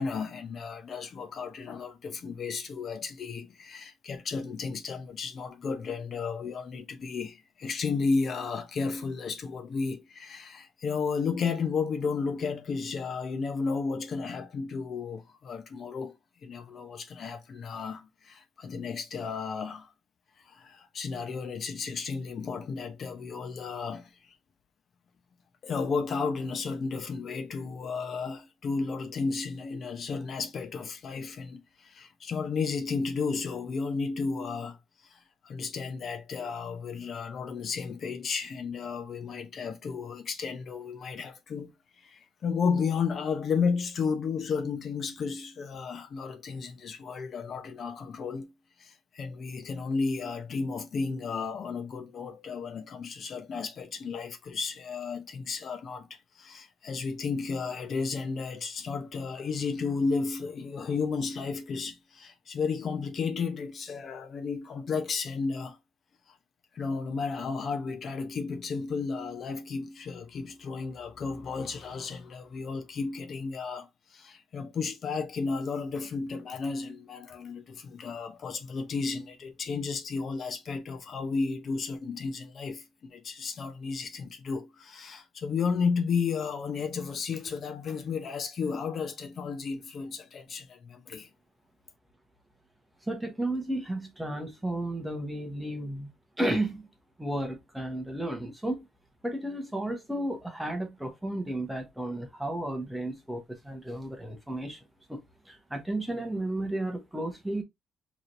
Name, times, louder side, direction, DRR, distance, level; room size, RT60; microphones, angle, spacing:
voice 1, 0.0-16.2 16.4-19.9 20.4-24.4 25.6-34.8 35.1-48.5 48.8-65.8 66.7-91.3, left 5 dB, 40° left, 0.8 m, -33 dB
voice 2, 93.1-96.1 96.4-96.9 97.2-98.9 99.2-104.8 105.1-107.6, right 1 dB, 5° right, 1.0 m, -33 dB
4.8 x 3.1 x 2.6 m
cardioid pair, 165°, 0 cm